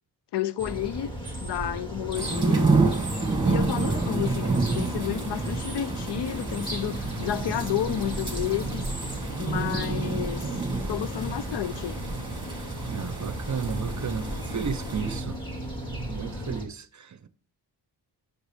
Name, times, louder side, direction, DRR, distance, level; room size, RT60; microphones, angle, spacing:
voice 1, 0.3-1.1 1.4-2.7 3.4-8.8 9.4-10.5 10.9-12.0, left 11 dB, 60° left, 0.6 m, -31 dB
sound 1, 0.6-16.7, right 1 dB, 10° left, 2.3 m, -35 dB
sound 2, 2.1-15.2, right 3 dB, 10° right, 2.0 m, -29 dB
voice 2, 12.9-15.4 16.1-17.3, right 6 dB, 40° right, 0.7 m, -33 dB
7.9 x 6.6 x 3.4 m
cardioid pair, 70°, 47 cm